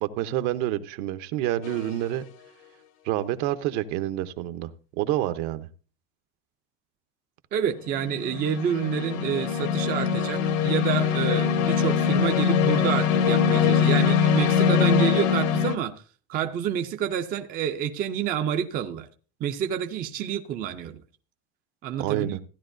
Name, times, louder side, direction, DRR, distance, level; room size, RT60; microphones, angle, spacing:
voice 1, 0.0-2.3 3.0-4.7 5.0-5.7 22.0-22.4, right 13 dB, 60° right, 11 dB, 0.9 m, -28 dB
sound 1, 1.6-2.0 7.9-15.7, left 7 dB, 80° left, 1.4 m, -23 dB
voice 2, 7.5-15.9 16.3-19.1 19.4-21.0 21.8-22.4, right 9 dB, 25° right, 6 dB, 0.4 m, -28 dB
15.0 x 10.5 x 2.6 m, 0.37 s
cardioid pair, 175°, 39 cm